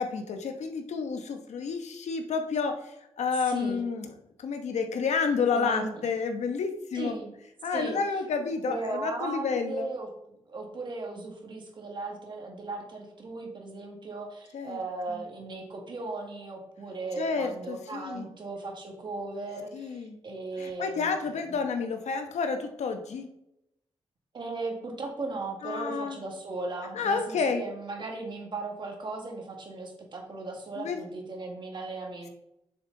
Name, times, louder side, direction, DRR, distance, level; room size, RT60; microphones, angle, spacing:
voice 1, 0.0-4.1 4.4-7.2 7.6-9.9 14.5-14.8 15.1-15.2 17.2-18.3 19.7-20.2 20.6-23.3 25.6-26.2 26.9-27.6 30.8-31.0, left 5 dB, 80° left, 6 dB, 1.0 m, -30 dB
voice 2, 3.4-3.8 5.5-6.0 6.9-7.3 7.7-8.0 8.7-10.1 10.5-21.4 24.3-32.3, right 3 dB, 45° right, 1 dB, 1.8 m, -37 dB
7.0 x 6.3 x 3.9 m, 0.82 s
wide cardioid pair, 155°, 11 cm